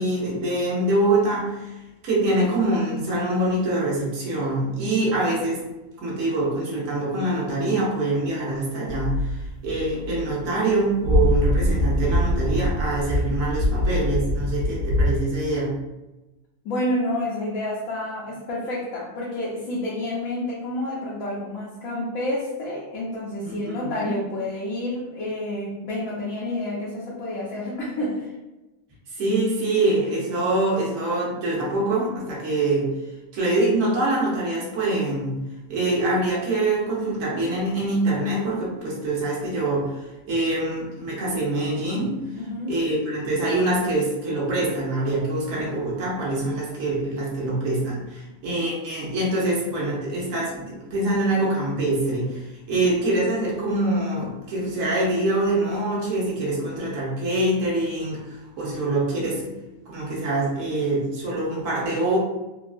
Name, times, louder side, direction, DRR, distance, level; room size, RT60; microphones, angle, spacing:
voice 1, 0.0-5.6 6.0-15.7 23.4-24.2 29.1-32.9 33.3-35.4 35.7-42.2 42.7-59.5 59.9-62.2, right 2 dB, 65° right, -5 dB, 1.3 m, -24 dB
sound 1, 8.9-10.5 11.0-15.1, left 1 dB, 90° right, 1.2 m, -24 dB
voice 2, 16.6-28.4 42.4-42.7 52.9-53.0, left 1 dB, 75° left, -6 dB, 1.1 m, -29 dB
3.5 x 2.3 x 2.4 m, 1.0 s
omnidirectional pair, 1.5 m